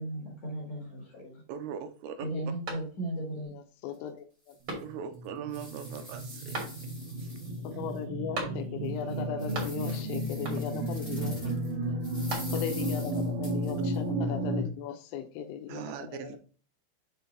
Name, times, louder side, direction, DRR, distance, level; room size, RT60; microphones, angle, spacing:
voice 1, 0.0-1.4 2.2-3.5 9.6-10.0 11.2-11.5, right 1 dB, 50° left, -2 dB, 2.2 m, -37 dB
voice 2, 1.5-2.3 4.8-6.6 15.7-16.4, right 8 dB, 85° right, 7 dB, 3.4 m, -40 dB
sound 1, 2.6-3.3 3.7-3.8 4.6-5.3 6.5-7.2 8.3-8.9 9.2-10.0 10.4-10.9 11.9-12.9, right 2 dB, 40° right, 2.1 m, -40 dB
voice 3, 3.5-4.2 7.6-11.3 12.5-16.4, left 8 dB, 80° left, 7 dB, 3.3 m, -37 dB
sound 2, 3.9-4.0 4.5-4.6 5.1-8.0 8.4-8.5 9.0-11.7 12.0-14.0, equal, 20° left, 0.8 m, -47 dB
sound 3, 4.9-14.6, right 1 dB, 60° right, 2.4 m, -33 dB
7.8 x 4.3 x 3.9 m, 0.39 s
omnidirectional pair, 5.9 m